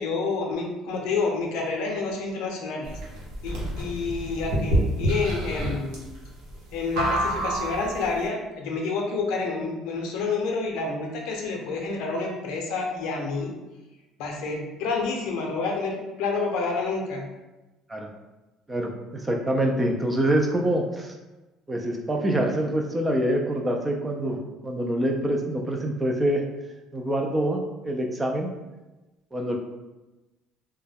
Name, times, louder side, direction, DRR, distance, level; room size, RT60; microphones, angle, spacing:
voice 1, 0.0-3.0 3.4-6.0 6.7-13.5 14.2-17.3, left 4 dB, 80° left, 0 dB, 0.6 m, -29 dB
sound 1, 2.8-8.1, right 1 dB, 80° right, 0.9 m, -27 dB
voice 2, 18.7-21.2 21.7-26.4 26.9-28.5 29.3-29.6, right 1 dB, 15° right, 2 dB, 0.3 m, -25 dB
2.2 x 2.1 x 3.3 m, 1.1 s
cardioid pair, 130°, 0 cm